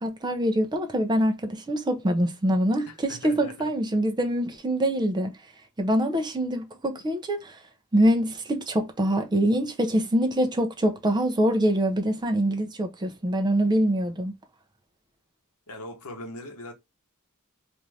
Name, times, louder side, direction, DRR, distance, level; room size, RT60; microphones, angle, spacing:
voice 1, 0.0-5.3 5.8-7.6 7.9-14.4, right 1 dB, 20° right, 0.5 m, -24 dB
voice 2, 2.9-3.7 15.7-16.7, left 1 dB, 80° left, 0.8 m, -40 dB
2.5 x 2.5 x 3.1 m
head